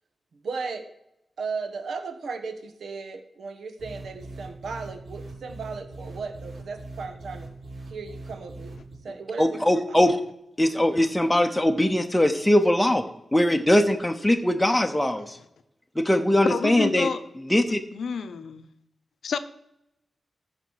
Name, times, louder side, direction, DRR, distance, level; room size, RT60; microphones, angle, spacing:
voice 1, 0.3-0.9 1.4-7.5 7.9-8.8 9.0-10.0, right 4 dB, 85° right, 8 dB, 1.2 m, -36 dB
sound 1, 3.8-8.9, right 2 dB, 65° right, 4.2 m, -41 dB
voice 2, 9.4-10.2 10.6-13.0 13.3-15.4 16.0-17.1 17.5-17.8, left 1 dB, 10° left, 5 dB, 0.8 m, -21 dB
voice 3, 16.5-17.2 17.9-18.7 19.2-19.4, left 6 dB, 85° left, 11 dB, 0.7 m, -29 dB
14.5 x 5.1 x 4.7 m, 0.82 s
wide cardioid pair, 100°, 0 cm